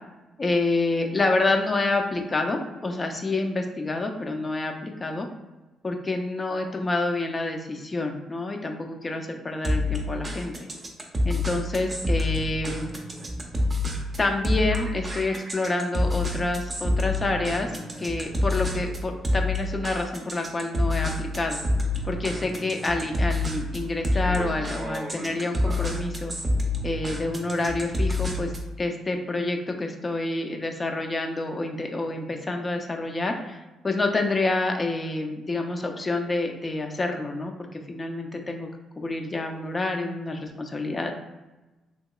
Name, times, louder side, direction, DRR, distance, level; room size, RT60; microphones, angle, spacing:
voice 1, 0.4-5.3 5.8-10.7 11.2-12.9 14.2-21.6 22.0-26.3 26.8-28.5 28.8-38.7 39.0-41.1, left 2 dB, 30° left, 3 dB, 0.4 m, -28 dB
sound 1, 9.6-28.7, left 1 dB, 30° right, 0.6 m, -28 dB
2.9 x 2.8 x 2.3 m, 1.1 s
cardioid pair, 90°, 0 cm